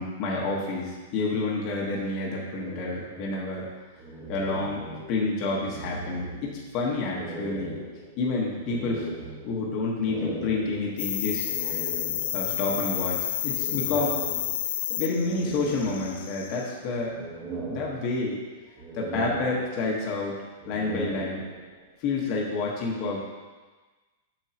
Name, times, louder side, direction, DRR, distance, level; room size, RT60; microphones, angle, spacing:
voice 1, 0.0-3.7 4.3-4.8 5.1-7.8 8.2-9.1 9.4-11.8 12.3-14.2 14.9-17.2 17.7-18.4 18.9-20.3 20.7-21.5 22.0-23.2, left 3 dB, 35° left, -3 dB, 1.3 m, -29 dB
sound 1, 2.5-5.3 5.6-6.7 7.1-12.5 13.5-14.8 15.2-16.5 16.9-18.4 18.8-20.1 20.5-21.8, right 2 dB, 30° right, 1.7 m, -39 dB
sound 2, 11.0-16.7, left 12 dB, 65° left, 0.4 m, -30 dB
7.4 x 6.4 x 2.9 m, 1.3 s
supercardioid pair, 160°, 0 cm